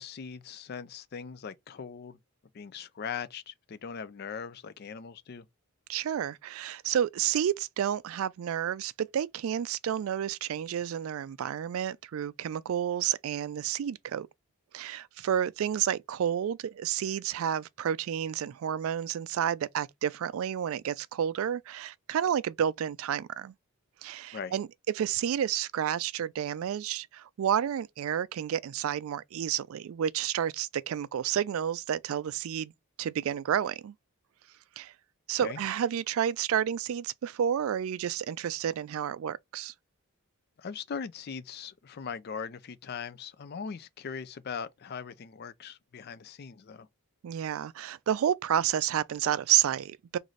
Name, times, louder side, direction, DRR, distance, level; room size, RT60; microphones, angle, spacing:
voice 1, 0.0-2.2 2.5-5.5 24.3-24.5 35.4-35.6 40.6-46.9, left 6 dB, 45° left, 0.4 m, -40 dB
voice 2, 5.9-14.3 14.7-23.5 24.0-24.7 24.9-32.7 33.0-33.9 34.8-34.9 35.3-39.7 47.2-50.2, right 9 dB, 65° right, 0.3 m, -30 dB
3.1 x 2.6 x 3.9 m
head